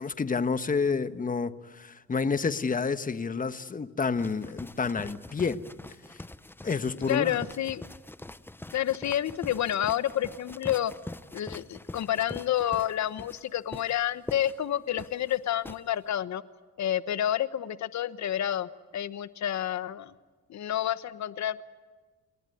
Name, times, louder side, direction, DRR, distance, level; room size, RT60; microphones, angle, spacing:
voice 1, 0.0-5.6 6.6-7.4, left 5 dB, 25° left, 1.4 m, -29 dB
sound 1, 4.2-15.8, left 2 dB, 5° left, 0.8 m, -44 dB
voice 2, 7.1-7.9 8.7-10.9 11.3-16.4 16.8-20.1 20.5-21.6, left 11 dB, 65° left, 1.2 m, -29 dB
28.5 x 19.5 x 9.5 m
cardioid pair, 90°, 30 cm